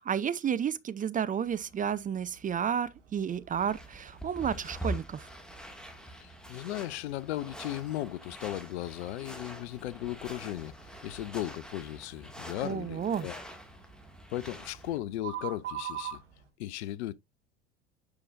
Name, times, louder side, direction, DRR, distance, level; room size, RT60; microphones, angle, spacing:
voice 1, 0.0-5.3 12.6-13.3, right 8 dB, 25° right, 0.6 m, -31 dB
sound 1, 1.4-16.5, right 9 dB, 80° right, 2.0 m, -48 dB
sound 2, 3.5-15.0, equal, ahead, 2.1 m, -44 dB
voice 2, 6.2-10.7 11.0-13.4 14.3-16.2 16.6-17.1, left 14 dB, 65° left, 0.7 m, -36 dB
9.7 x 5.8 x 2.6 m
figure-of-eight pair, 75°, 36 cm